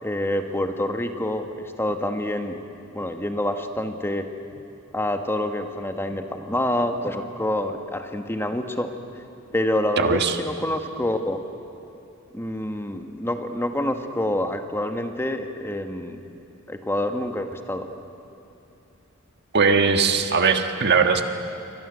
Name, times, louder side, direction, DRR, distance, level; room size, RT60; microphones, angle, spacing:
voice 1, 0.0-2.6 2.9-4.2 4.9-8.9 9.5-11.4 12.3-16.2 16.7-17.9, left 1 dB, 10° left, 6 dB, 1.4 m, -27 dB
voice 2, 10.0-10.4 19.5-21.2, right 5 dB, 50° right, 6 dB, 1.5 m, -19 dB
28.0 x 24.0 x 8.1 m, 2.8 s
head